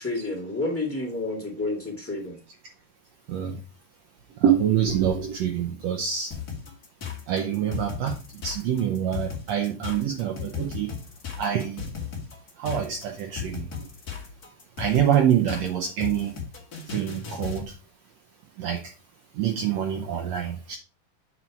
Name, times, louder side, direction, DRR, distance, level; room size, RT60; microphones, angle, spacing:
voice 1, 0.0-2.4, left 2 dB, 10° left, -4 dB, 0.6 m, -30 dB
voice 2, 3.3-3.6 4.4-6.3 7.3-8.1 8.4-10.9 11.4-11.8 12.6-13.7 14.8-16.3 16.9-17.6 18.6-18.8 19.4-20.8, right 9 dB, 80° right, 3 dB, 1.5 m, -25 dB
sound 1, 6.3-17.7, left 6 dB, 40° left, 1.5 m, -36 dB
8.1 x 4.5 x 4.7 m, 0.33 s
omnidirectional pair, 4.2 m